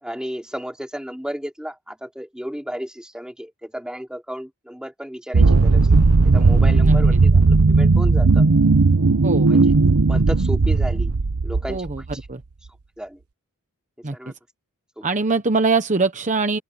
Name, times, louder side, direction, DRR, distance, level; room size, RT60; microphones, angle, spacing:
voice 1, 0.0-5.9 6.2-8.5 9.5-9.6 10.1-11.1 11.4-11.9 13.0-13.2 14.1-14.3 15.0-15.1, equal, 5° right, 3.9 m, -33 dB
sound 1, 5.3-12.1, right 3 dB, 80° right, 0.8 m, -16 dB
voice 2, 6.8-7.2 9.2-9.5 11.7-12.0 12.3-12.4 14.0-14.3 15.0-16.6, right 4 dB, 35° right, 1.0 m, -23 dB
open air
head